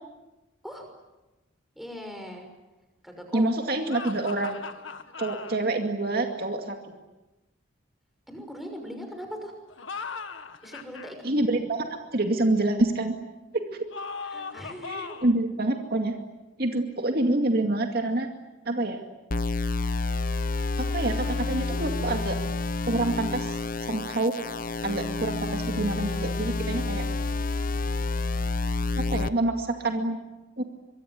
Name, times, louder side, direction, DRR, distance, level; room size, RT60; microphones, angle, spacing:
voice 1, 1.8-2.5 3.0-3.6 8.3-9.5 10.6-11.3 14.2-15.2, equal, ahead, 3 dB, 6.0 m, -40 dB
voice 2, 3.3-4.6 5.2-6.8 11.2-11.9 12.1-13.2 14.9-16.1 16.6-18.3 18.7-19.0 20.8-22.4 22.9-23.6 23.9-24.3 24.8-27.0 29.0-30.2 30.6-30.7, right 2 dB, 50° right, 4 dB, 2.3 m, -27 dB
sound 1, 3.9-5.6 9.7-11.1 13.9-15.4, left 5 dB, 80° left, 1.8 m, -38 dB
sound 2, 19.3-29.3, left 3 dB, 45° left, 1.0 m, -29 dB
25.5 x 23.0 x 9.6 m, 1.1 s
head